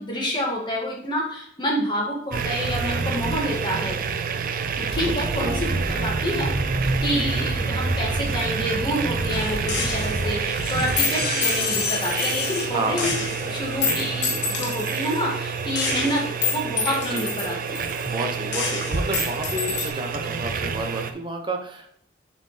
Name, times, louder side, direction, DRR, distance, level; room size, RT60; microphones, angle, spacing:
voice 1, 0.0-4.0 4.8-6.5 6.8-13.2 13.5-17.9, equal, 25° left, -2 dB, 1.6 m, -28 dB
sound 1, 2.3-21.1, right 4 dB, 50° right, 0.5 m, -27 dB
voice 2, 5.0-5.6 7.1-7.5 11.2-11.6 12.7-13.1 13.3-14.0 15.8-16.2 17.1-17.2 18.1-21.9, right 1 dB, 25° right, 3 dB, 0.9 m, -32 dB
sound 2, 6.9-14.5, left 5 dB, 60° left, 0.8 m, -34 dB
Gunshot gunfire, 9.7-10.3 11.0-12.7 13.0-15.2 15.8-18.2 18.5-19.9, left 5 dB, 90° left, 1.2 m, -28 dB
6.9 x 4.3 x 3.4 m, 0.65 s
head